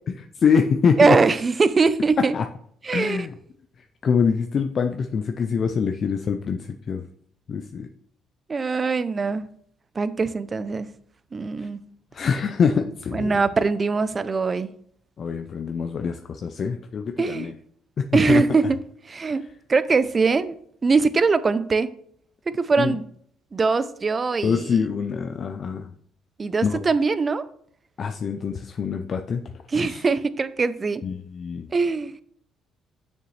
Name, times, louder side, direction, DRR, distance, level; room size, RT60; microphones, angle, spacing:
voice 1, 0.4-1.2 2.3-2.4 2.9-3.3 4.0-7.0 7.5-7.9 12.1-13.4 15.2-17.5 18.0-18.4 22.8-23.0 24.4-25.9 26.6-26.8 28.0-29.4 29.8-30.0 31.0-31.7, left 6 dB, 50° left, 0.5 m, -24 dB
voice 2, 1.0-2.3 2.8-3.3 8.5-9.5 10.0-10.9 11.3-11.8 13.1-14.7 17.2-17.5 18.1-18.8 19.1-19.4 19.7-20.6 20.8-21.9 22.5-23.1 23.5-24.7 26.4-27.4 29.7-31.0 31.7-32.2, right 4 dB, 35° right, 0.5 m, -22 dB
6.8 x 6.5 x 3.2 m
supercardioid pair, 75°, 0 cm